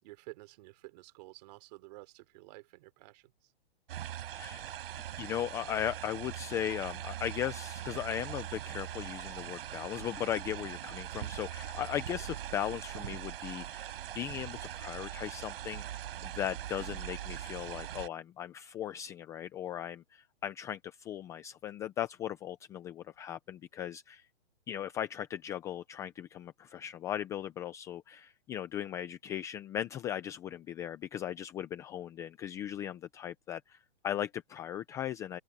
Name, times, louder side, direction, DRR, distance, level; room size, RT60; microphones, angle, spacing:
voice 1, 0.0-3.5, right 22 dB, 40° right, 3.3 m, -52 dB
sound 1, 3.9-18.1, right 12 dB, 60° right, 5.7 m, -41 dB
voice 2, 5.2-24.3 24.7-35.4, left 10 dB, 10° left, 0.5 m, -38 dB
hypercardioid pair, 155°, 33 cm